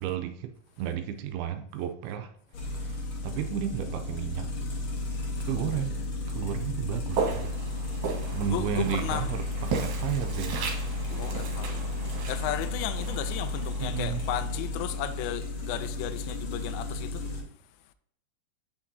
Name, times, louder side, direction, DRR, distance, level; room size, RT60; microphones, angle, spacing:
voice 1, 0.0-2.3 2.6-4.5 5.4-6.0 6.3-7.5 8.3-9.4 9.7-10.6 13.8-14.2, right 10 dB, 80° right, 2.5 m, -33 dB
sound 1, 2.5-17.4, left 1 dB, 65° left, 1.3 m, -33 dB
voice 2, 5.6-6.0 8.0-9.3 11.0-17.3 17.6-17.7, left 12 dB, 80° left, 2.2 m, -35 dB
Walk footsteps, 7.1-14.2, right 5 dB, 60° right, 2.4 m, -36 dB
sound 2, 11.1-13.5, left 1 dB, 40° left, 1.9 m, -51 dB
8.6 x 6.0 x 2.7 m
omnidirectional pair, 4.6 m